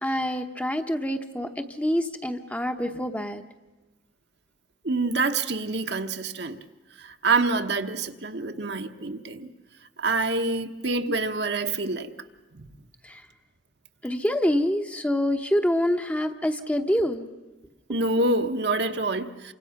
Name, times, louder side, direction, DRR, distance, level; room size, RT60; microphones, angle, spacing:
voice 1, 0.0-3.4 13.0-13.2 14.0-17.3, equal, 10° left, 6 dB, 0.8 m, -26 dB
voice 2, 4.8-6.6 7.0-9.5 10.0-12.1 12.5-12.6 17.9-19.5, right 3 dB, 60° right, 6 dB, 1.1 m, -26 dB
28.5 x 25.0 x 5.9 m, 1.1 s
head